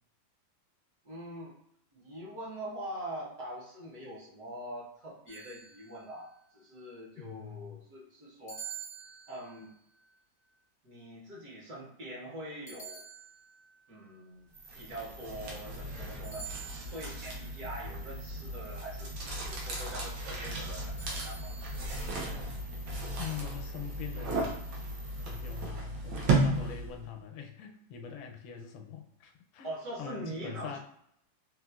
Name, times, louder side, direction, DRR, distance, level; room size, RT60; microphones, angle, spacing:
voice 1, 1.0-1.6 1.9-8.6 9.3-9.7 10.8-13.0 13.9-14.5 14.7-16.5 16.9-21.5 26.6-26.8 29.6-30.8, right 1 dB, 60° right, -5 dB, 1.2 m, -43 dB
sound 1, 5.3-6.2 8.5-9.7 12.7-13.7 16.2-17.2 21.0-21.8, right 7 dB, 65° left, 0.4 m, -47 dB
voice 2, 7.2-7.8 23.2-24.6 25.2-29.7 30.0-30.8, left 8 dB, 85° left, 3 dB, 1.3 m, -43 dB
sound 2, 14.5-25.6, right 3 dB, 40° right, 0.7 m, -54 dB
sound 3, 14.7-27.1, right 2 dB, 90° right, 1.5 m, -35 dB
4.1 x 2.3 x 2.3 m, 0.73 s
omnidirectional pair, 2.1 m